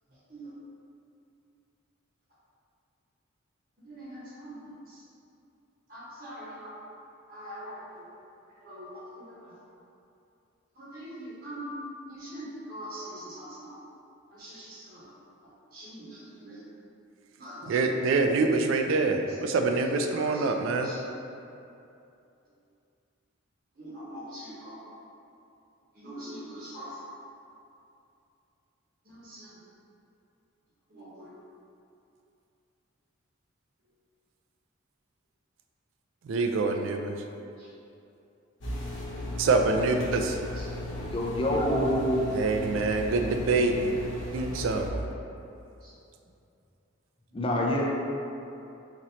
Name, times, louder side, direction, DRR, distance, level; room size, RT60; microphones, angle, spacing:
voice 1, 3.8-5.0 5.9-6.8 7.3-8.0 8.6-9.5 10.7-11.7 12.1-13.8 14.3-15.1 15.7-16.6 17.4-17.9 19.3-19.4 20.1-21.0 23.7-24.8 25.9-27.0 29.0-29.6 30.9-31.3 37.6-37.7 40.5-40.7 41.8-42.0 45.8-45.9 47.7-47.8, equal, 45° right, -11 dB, 0.9 m, -43 dB
voice 2, 17.7-20.9 36.3-37.1 39.4-40.4 42.3-43.9 44.3-44.9, right 3 dB, 65° right, 4 dB, 0.3 m, -25 dB
sound 1, 38.6-44.9, left 1 dB, 60° left, 0.7 m, -36 dB
voice 3, 40.9-42.3 47.3-47.8, equal, 25° left, -2 dB, 0.4 m, -26 dB
4.1 x 3.0 x 2.8 m, 2.7 s
head